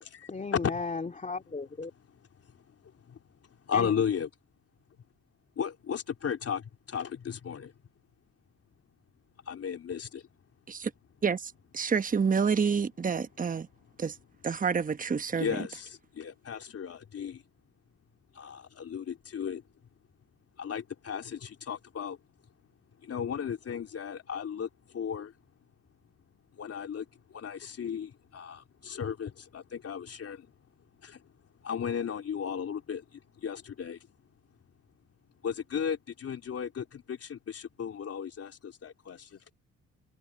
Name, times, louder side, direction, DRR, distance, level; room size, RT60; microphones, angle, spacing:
voice 1, 0.3-1.9 3.7-3.9, left 4 dB, 25° left, 2.4 m, -35 dB
voice 2, 3.7-4.3 5.6-7.7 9.5-10.2 15.4-17.4 18.4-19.6 20.6-22.2 23.0-25.3 26.6-27.1 27.3-30.5 31.0-31.2 31.6-34.0 35.4-39.4, left 7 dB, 50° left, 3.6 m, -35 dB
voice 3, 11.2-13.7 14.0-14.2 14.4-15.6, right 6 dB, 25° right, 1.1 m, -28 dB
cardioid pair, 90°, 30 cm